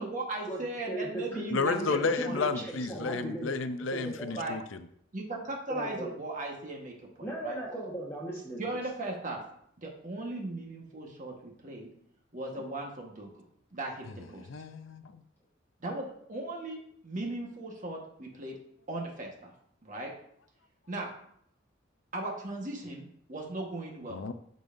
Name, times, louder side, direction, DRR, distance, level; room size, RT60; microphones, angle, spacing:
voice 1, 0.0-2.4 4.3-4.6 5.1-7.6 8.6-9.4 9.8-11.9 12.3-13.3 13.7-14.5 15.8-18.5 18.9-19.5 19.8-20.1 20.9-21.1 22.1-24.3, right 2 dB, 40° right, 0 dB, 1.3 m, -38 dB
voice 2, 0.9-3.6 3.9-4.4 5.7-6.1 7.2-8.7 12.5-12.6 19.9-20.0, right 1 dB, 15° left, -5 dB, 1.2 m, -37 dB
voice 3, 1.5-4.8 14.5-15.2 24.1-24.3, left 4 dB, 75° left, 10 dB, 0.5 m, -32 dB
13.0 x 5.3 x 2.6 m, 0.69 s
head